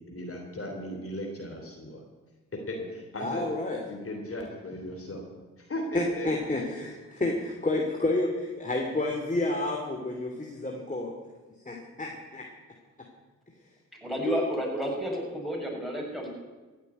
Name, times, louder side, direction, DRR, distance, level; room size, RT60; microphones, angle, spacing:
voice 1, 0.0-2.0 2.7-3.5 3.9-5.3 5.6-6.8, left 1 dB, 40° left, 2 dB, 3.1 m, -37 dB
voice 2, 3.2-3.8 5.9-11.1 11.6-12.5 14.3-14.5, left 2 dB, 25° left, 1 dB, 2.8 m, -30 dB
voice 3, 14.0-16.3, equal, ahead, -1 dB, 6.5 m, -31 dB
16.0 x 6.8 x 9.6 m, 1.3 s
supercardioid pair, 50°, 33 cm